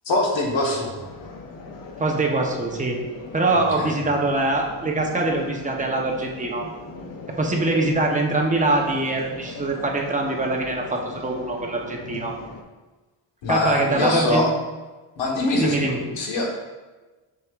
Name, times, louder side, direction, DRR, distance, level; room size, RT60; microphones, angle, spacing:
voice 1, 0.0-1.0 3.5-3.9 6.2-6.3 13.4-14.5 15.2-16.6, left 2 dB, 75° left, -1 dB, 1.5 m, -23 dB
sound 1, 1.0-12.6, left 3 dB, 45° left, 0.8 m, -40 dB
voice 2, 2.0-3.0 3.3-6.7 7.4-12.4 13.5-14.5 15.5-16.0, right 2 dB, 15° right, 0 dB, 0.8 m, -23 dB
6.6 x 5.9 x 2.4 m, 1.2 s
cardioid pair, 125°, 45 cm